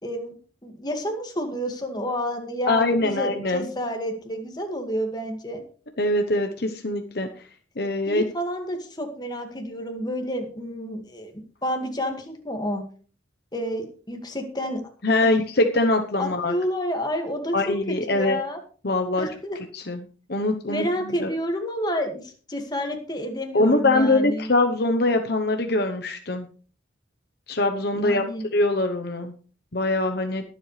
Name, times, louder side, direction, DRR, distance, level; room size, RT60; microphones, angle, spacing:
voice 1, 0.0-0.3 0.6-5.6 8.1-11.3 11.6-12.8 13.5-14.8 15.2-15.4 16.2-18.6 19.2-19.6 20.7-24.5 27.9-28.4, equal, 20° left, 4 dB, 2.0 m, -29 dB
voice 2, 2.7-3.7 6.0-7.3 7.8-8.2 15.0-16.5 17.5-18.4 18.8-19.3 19.7-21.3 23.5-26.5 27.5-28.2 28.5-29.3 29.7-30.4, left 2 dB, 55° left, 5 dB, 1.0 m, -23 dB
22.0 x 7.8 x 3.3 m, 0.40 s
head